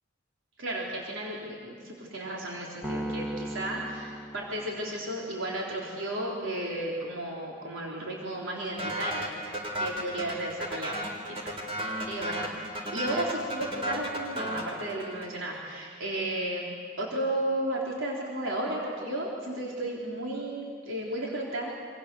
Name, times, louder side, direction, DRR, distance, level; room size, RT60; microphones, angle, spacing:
voice 1, 0.6-9.3 9.8-12.5 12.8-21.7, right 1 dB, 75° right, -3 dB, 3.8 m, -34 dB
Piano, 2.8-5.3, right 1 dB, 5° right, 1.7 m, -37 dB
sound 1, 8.8-15.5, equal, 30° right, 3.7 m, -34 dB
27.5 x 27.0 x 7.0 m, 2.2 s
head